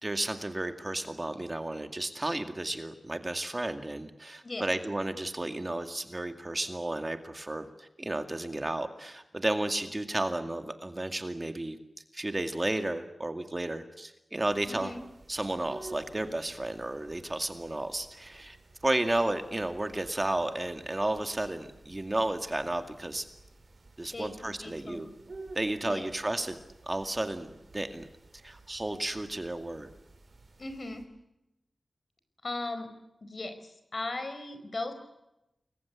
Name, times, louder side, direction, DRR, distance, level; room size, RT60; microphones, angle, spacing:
voice 1, 0.0-11.8 12.1-14.9 15.3-18.6 18.8-23.2 24.0-25.1 25.5-28.1 28.4-29.9, right 1 dB, 25° right, 7 dB, 2.2 m, -33 dB
sound 1, 14.4-31.0, right 2 dB, 50° right, 5.7 m, -53 dB
voice 2, 14.7-15.0 24.1-25.1 25.8-26.1 30.6-31.1 32.4-32.9 33.2-34.9, left 2 dB, 45° left, 9 dB, 4.9 m, -38 dB
29.5 x 22.0 x 8.4 m, 0.90 s
wide cardioid pair, 90°, 0 cm